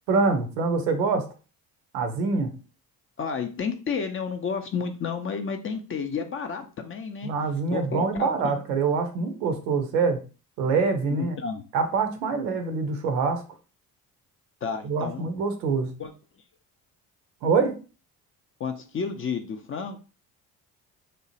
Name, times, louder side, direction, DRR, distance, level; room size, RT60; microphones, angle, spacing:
voice 1, 0.1-1.2 1.9-2.5 7.2-10.2 10.6-11.4 11.7-13.4 14.8-15.9 17.4-17.8, right 4 dB, 85° right, 6 dB, 0.6 m, -25 dB
voice 2, 3.2-7.3 7.7-8.5 11.1-11.7 14.6-15.3 16.0-16.1 18.6-20.0, left 6 dB, 30° left, 7 dB, 0.4 m, -31 dB
2.9 x 2.0 x 2.7 m, 0.34 s
hypercardioid pair, 50°, 48 cm